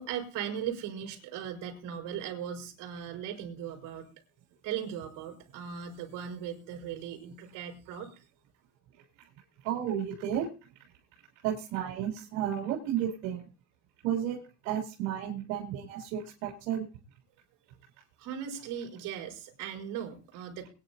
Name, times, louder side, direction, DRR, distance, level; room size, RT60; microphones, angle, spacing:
voice 1, 0.0-4.1 4.6-8.2 18.2-20.7, right 8 dB, 55° right, 1 dB, 4.8 m, -38 dB
voice 2, 9.6-10.5 11.4-13.4 14.0-14.4 14.6-16.8, right 10 dB, 80° right, -2 dB, 3.1 m, -32 dB
22.5 x 9.9 x 2.7 m, 0.33 s
cardioid pair, 135°, 36 cm